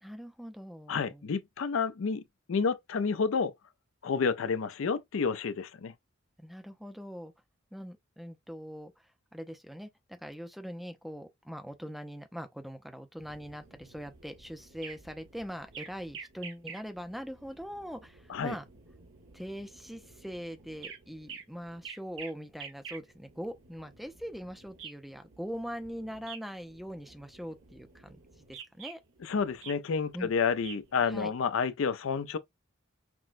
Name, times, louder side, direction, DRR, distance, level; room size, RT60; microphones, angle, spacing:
voice 1, 0.0-1.3 6.4-7.3 7.7-8.9 9.3-18.7 19.3-29.0 30.1-30.3 31.1-31.3, equal, ahead, 0.4 m, -42 dB
voice 2, 0.9-2.2 2.5-3.5 4.0-5.9 18.3-18.5 29.2-32.4, left 5 dB, 80° left, 0.4 m, -30 dB
sound 1, 13.2-31.3, right 6 dB, 70° right, 1.2 m, -50 dB
5.9 x 2.1 x 2.5 m
head